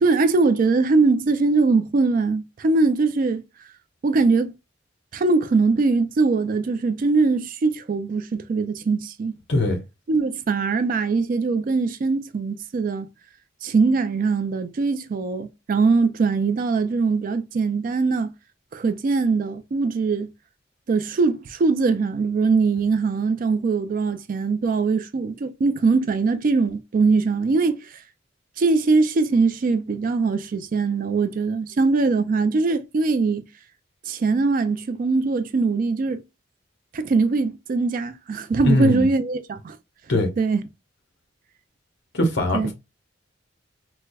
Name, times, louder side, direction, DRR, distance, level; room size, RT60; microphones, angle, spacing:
voice 1, 0.0-3.4 4.0-4.5 5.1-9.3 10.1-13.1 13.6-18.3 18.7-20.3 20.9-27.8 28.6-33.5 34.1-36.2 36.9-39.8 40.4-40.6 42.5-42.7, right 4 dB, 45° right, 0.3 m, -21 dB
voice 2, 9.5-9.8 38.6-39.1 40.1-40.3 42.1-42.7, left 2 dB, 60° left, 1.0 m, -21 dB
4.5 x 2.1 x 2.2 m
head